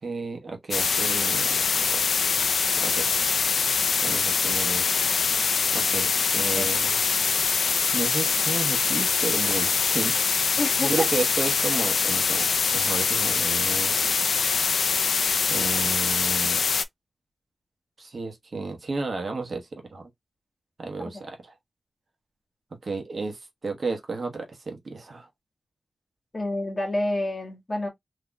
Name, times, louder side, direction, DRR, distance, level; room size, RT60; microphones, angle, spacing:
voice 1, 0.0-1.6 1.9-2.5 2.8-3.1 4.0-4.9 5.7-7.0 7.9-10.1 10.8-12.5 12.7-14.0 15.5-16.6 18.0-20.1 20.8-21.5 22.8-25.3, right 3 dB, 50° right, 1.0 m, -32 dB
sound 1, 0.7-16.8, left 5 dB, 85° left, 0.4 m, -24 dB
voice 2, 6.4-6.7 10.6-11.1 21.0-21.2 26.3-27.9, left 1 dB, 35° left, 1.5 m, -29 dB
3.8 x 2.9 x 2.2 m
wide cardioid pair, 120°, 0 cm